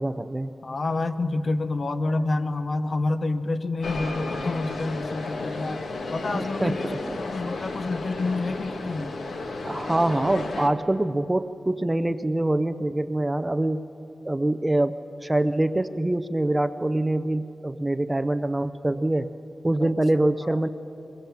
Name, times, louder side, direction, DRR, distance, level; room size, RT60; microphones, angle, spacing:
voice 1, 0.0-0.5 6.3-7.2 9.6-13.8 14.2-19.3 19.6-20.7, right 1 dB, 15° right, 11 dB, 0.5 m, -25 dB
voice 2, 0.6-5.8 6.1-6.9 7.2-9.2 19.8-19.9 20.4-20.6, left 2 dB, 40° left, 9 dB, 0.9 m, -28 dB
sound 1, 3.8-10.7, left 3 dB, 80° left, 1.7 m, -33 dB
23.0 x 22.5 x 7.3 m, 2.8 s
wide cardioid pair, 175°, 0 cm